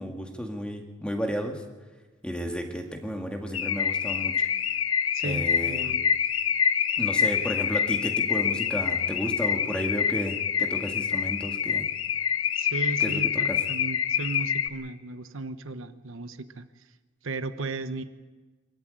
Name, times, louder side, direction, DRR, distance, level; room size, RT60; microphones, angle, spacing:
voice 1, 0.0-1.6 2.2-4.5 5.2-6.0 7.0-11.9 13.0-13.6, equal, 5° left, 2 dB, 2.0 m, -33 dB
Car / Alarm, 3.5-14.7, left 8 dB, 85° left, 1.2 m, -26 dB
voice 2, 5.1-6.0 12.6-16.9 17.2-18.0, right 3 dB, 75° right, 10 dB, 1.0 m, -35 dB
24.5 x 14.0 x 8.9 m, 1.3 s
head